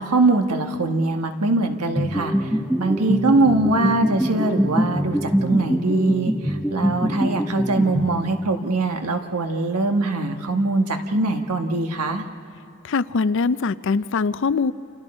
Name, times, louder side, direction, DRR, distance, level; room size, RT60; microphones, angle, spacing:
voice 1, 0.0-12.2, right 2 dB, 90° right, 5 dB, 1.5 m, -22 dB
sound 1, 2.0-8.7, equal, ahead, 0.7 m, -24 dB
voice 2, 12.8-14.7, left 4 dB, 55° left, 16 dB, 0.4 m, -22 dB
29.5 x 27.0 x 4.4 m, 2.5 s
head